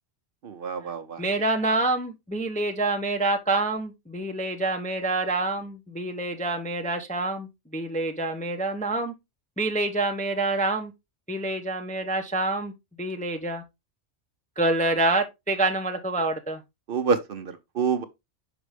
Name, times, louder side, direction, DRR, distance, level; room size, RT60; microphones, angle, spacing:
voice 1, 0.4-1.2 16.9-18.0, right 5 dB, 55° right, 0.8 m, -27 dB
voice 2, 1.2-9.1 9.6-10.9 11.3-12.7 13.0-13.6 14.6-16.6, right 2 dB, 10° left, 0.4 m, -27 dB
5.9 x 5.0 x 3.2 m
omnidirectional pair, 1.2 m